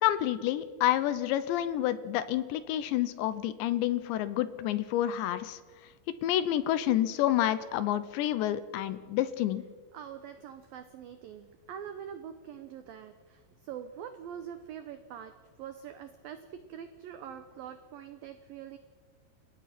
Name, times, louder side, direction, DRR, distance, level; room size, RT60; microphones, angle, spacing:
voice 1, 0.0-5.6 6.2-9.6, left 12 dB, 75° left, 13 dB, 2.9 m, -29 dB
voice 2, 9.9-15.3 15.6-18.8, right 9 dB, 80° right, 9 dB, 2.0 m, -44 dB
30.0 x 16.5 x 5.9 m, 1.5 s
omnidirectional pair, 5.5 m